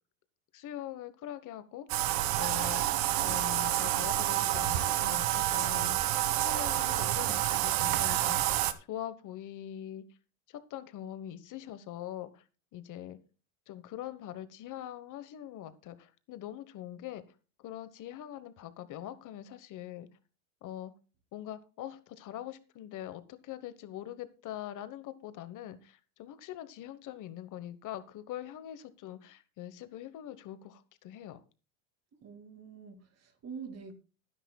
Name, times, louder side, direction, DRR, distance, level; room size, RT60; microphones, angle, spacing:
voice 1, 0.5-1.9 2.3-2.8 3.2-6.0 6.4-10.0 10.5-12.4 12.7-13.2 13.7-17.2 17.6-20.1 20.6-20.9 21.3-31.4, left 12 dB, 40° left, 12 dB, 1.2 m, -43 dB
Bathtub (filling or washing), 1.9-8.7, right 14 dB, 65° right, 1.5 m, -29 dB
voice 2, 32.2-33.9, right 6 dB, 35° right, 8 dB, 2.5 m, -45 dB
20.5 x 10.0 x 2.3 m, 0.34 s
supercardioid pair, 120°, 45 cm